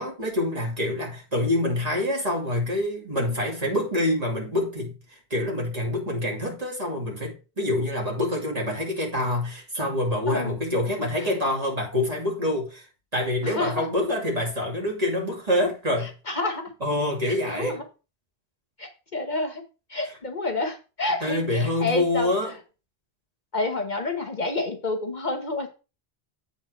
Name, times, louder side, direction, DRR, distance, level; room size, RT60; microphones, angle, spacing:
voice 1, 0.0-12.9 13.1-16.1 16.8-17.8 21.2-22.5, left 1 dB, 40° right, 2.7 m, -26 dB
voice 2, 10.3-10.6 11.2-11.3 13.4-13.9 16.0-16.6 17.3-17.8 18.8-19.6 19.9-22.3 23.5-25.7, left 2 dB, 50° left, 1.2 m, -29 dB
8.1 x 3.6 x 6.3 m
omnidirectional pair, 1.0 m